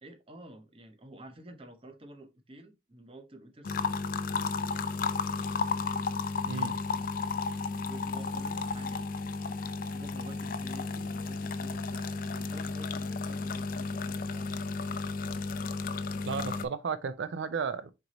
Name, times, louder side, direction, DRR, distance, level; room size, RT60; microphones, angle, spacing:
voice 1, 0.0-4.0 7.9-9.1 9.6-14.5, right 1 dB, 30° right, 0.7 m, -50 dB
sound 1, 3.6-16.7, left 4 dB, 45° left, 0.4 m, -33 dB
voice 2, 6.4-6.8 11.0-11.1 16.3-17.9, right 5 dB, 80° right, 0.4 m, -34 dB
4.6 x 3.9 x 2.9 m
head